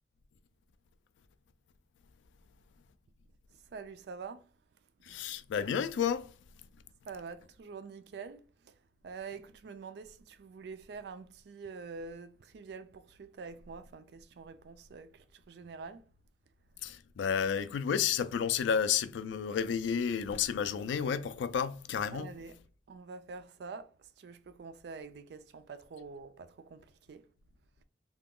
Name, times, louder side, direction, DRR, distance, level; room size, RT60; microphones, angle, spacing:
voice 1, 3.5-5.3 7.1-16.1 22.1-22.6 22.9-27.3, right 5 dB, 60° right, 0.3 m, -46 dB
voice 2, 5.0-6.3 16.8-22.3, left 7 dB, 80° left, 0.3 m, -31 dB
2.8 x 2.2 x 3.6 m
head